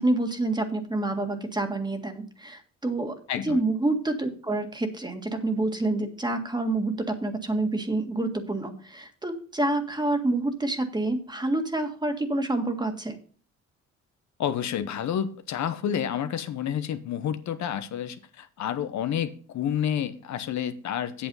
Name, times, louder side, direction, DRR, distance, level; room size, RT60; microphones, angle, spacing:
voice 1, 0.0-13.2, right 2 dB, 15° right, 6 dB, 1.9 m, -28 dB
voice 2, 3.3-3.6 14.4-21.3, left 9 dB, 65° left, 10 dB, 0.9 m, -29 dB
8.4 x 7.9 x 5.5 m, 0.41 s
cardioid pair, 90°, 30 cm